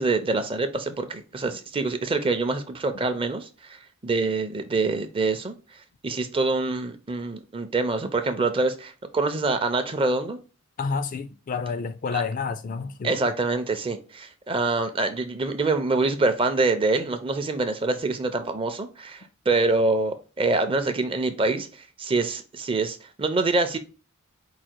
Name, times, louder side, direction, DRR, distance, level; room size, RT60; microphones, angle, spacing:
voice 1, 0.0-3.8 4.0-5.5 6.0-10.4 13.0-23.8, right 3 dB, 25° right, 0.5 m, -25 dB
voice 2, 10.8-13.2, left 5 dB, 35° left, 0.3 m, -29 dB
4.8 x 2.4 x 4.4 m
head